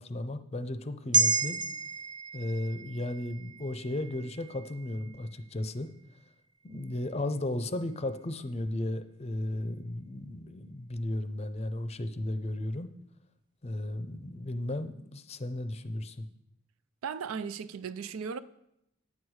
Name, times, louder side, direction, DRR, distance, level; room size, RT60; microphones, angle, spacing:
voice 1, 0.0-1.6 2.3-5.9 6.6-12.9 13.6-16.3, left 1 dB, 30° left, 0.5 m, -35 dB
sound 1, 1.1-5.6 6.0-6.2, right 3 dB, 20° right, 0.4 m, -32 dB
voice 2, 17.0-18.4, right 6 dB, 85° right, 0.4 m, -36 dB
9.2 x 8.0 x 4.7 m
head